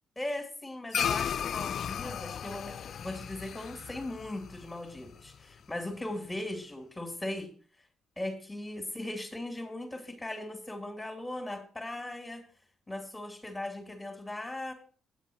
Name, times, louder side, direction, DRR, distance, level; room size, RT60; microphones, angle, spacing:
voice 1, 0.2-7.5 8.2-12.4 12.9-14.7, left 1 dB, 15° left, 3 dB, 2.7 m, -38 dB
sound 1, 0.9-5.6, left 8 dB, 60° left, 0.4 m, -35 dB
9.6 x 8.1 x 5.1 m, 0.41 s
cardioid pair, 90°, 0 cm